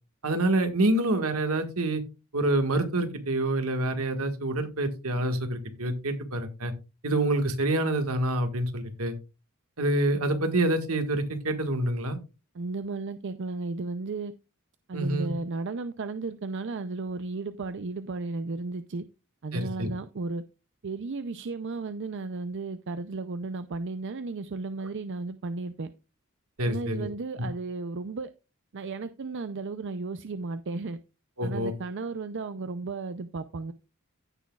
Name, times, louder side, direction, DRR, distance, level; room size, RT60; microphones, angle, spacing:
voice 1, 0.2-2.0 2.3-6.7 7.0-9.2 9.8-12.2 14.9-15.3 19.5-19.9 26.6-27.1 31.4-31.7, right 1 dB, 80° right, 1.7 m, -27 dB
voice 2, 12.5-14.3 14.9-19.0 19.4-20.4 20.8-25.9 26.6-28.3 28.7-31.0 31.4-33.7, right 3 dB, 55° right, 0.5 m, -34 dB
15.5 x 6.1 x 2.4 m
head